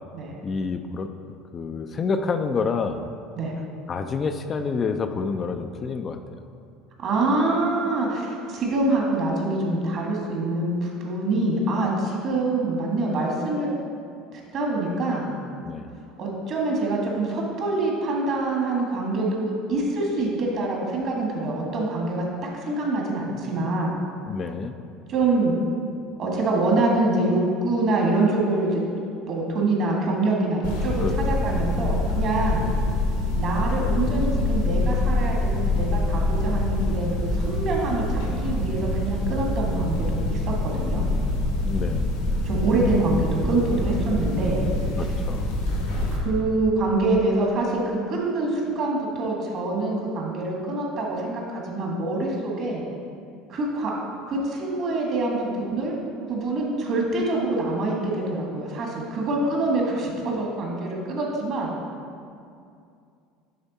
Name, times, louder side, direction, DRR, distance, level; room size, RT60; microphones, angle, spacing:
voice 1, 0.4-3.1 3.9-6.2 15.6-15.9 24.3-24.7 31.0-31.4 41.6-42.1 45.0-45.5, left 5 dB, 35° left, 7 dB, 0.4 m, -28 dB
voice 2, 7.0-13.7 14.3-15.3 16.2-22.2 22.6-24.0 25.1-25.6 26.2-28.8 29.3-32.6 33.3-41.0 42.4-44.6 45.0-45.1 46.1-52.8 53.5-53.9 54.3-55.9 56.3-61.7, right 2 dB, 50° right, -1 dB, 1.6 m, -25 dB
sound 1, 30.6-46.2, left 2 dB, 85° left, 1.4 m, -25 dB
8.7 x 3.5 x 4.1 m, 2.4 s
hypercardioid pair, 75°, 0 cm